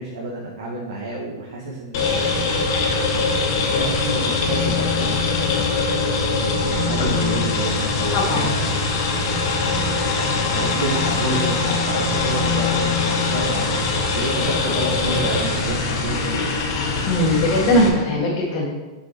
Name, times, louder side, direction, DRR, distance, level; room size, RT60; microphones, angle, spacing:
voice 1, 0.0-2.3 2.9-3.4 3.7-8.7 9.3-10.2 10.5-13.8 14.1-16.5, right 2 dB, 80° right, -3 dB, 1.4 m, -30 dB
sound 1, 1.9-17.9, left 3 dB, 55° left, 1.4 m, -22 dB
voice 2, 8.1-8.6 17.1-18.7, left 1 dB, 35° left, -6 dB, 1.5 m, -19 dB
5.7 x 5.5 x 4.4 m, 1.1 s
supercardioid pair, 155°, 2 cm